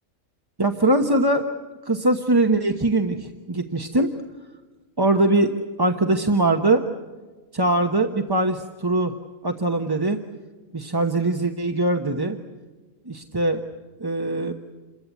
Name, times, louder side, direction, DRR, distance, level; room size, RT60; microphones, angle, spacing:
voice 1, 0.6-1.5 1.9-4.1 5.0-5.5 5.8-6.8 7.5-9.1 9.4-10.2 10.7-12.4 13.1-13.6 14.0-14.5, right 2 dB, 20° right, 4 dB, 1.0 m, -21 dB
28.5 x 22.5 x 8.3 m, 1.3 s
omnidirectional pair, 1.3 m